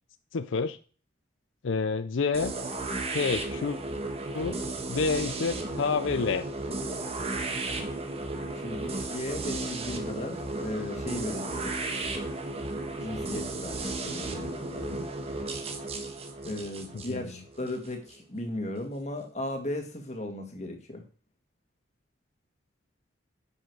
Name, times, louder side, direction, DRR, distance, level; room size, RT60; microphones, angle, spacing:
voice 1, 0.3-0.8 1.6-2.5 3.1-3.8 4.3-4.6 4.9-6.5 16.9-17.3, left 4 dB, 90° left, 12 dB, 0.5 m, -28 dB
sound 1, 2.3-18.2, right 2 dB, 30° right, 1.3 m, -34 dB
voice 2, 8.5-11.7 13.0-15.0 16.4-21.0, left 1 dB, 35° left, 4 dB, 1.8 m, -36 dB
9.8 x 6.3 x 4.7 m, 0.39 s
head